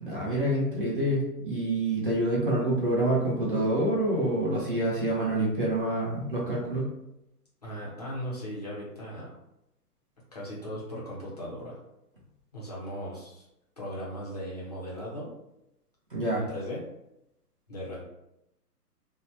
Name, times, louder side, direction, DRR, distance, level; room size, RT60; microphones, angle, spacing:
voice 1, 0.0-6.9 16.1-16.4, right 1 dB, 35° right, -5 dB, 0.5 m, -27 dB
voice 2, 7.6-9.4 10.3-11.8 12.5-13.5 13.8-15.3 16.4-16.9 17.7-18.0, equal, 25° left, -7 dB, 0.5 m, -37 dB
2.8 x 2.1 x 2.5 m, 0.86 s
hypercardioid pair, 160°, 48 cm